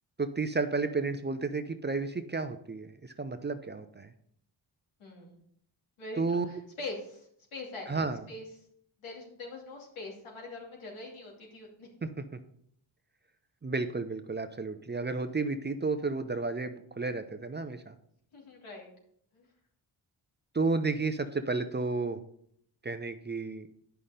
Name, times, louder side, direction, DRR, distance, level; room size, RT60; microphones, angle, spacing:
voice 1, 0.2-4.1 6.2-6.5 7.9-8.2 12.0-12.2 13.6-17.9 20.5-22.2 22.8-23.7, right 3 dB, 20° right, 9 dB, 0.6 m, -32 dB
voice 2, 5.0-5.4 6.0-8.5 9.0-11.9 18.3-18.9 19.3-19.5, left 2 dB, 85° left, -1 dB, 2.8 m, -43 dB
9.4 x 5.7 x 5.1 m, 0.67 s
wide cardioid pair, 110°, 48 cm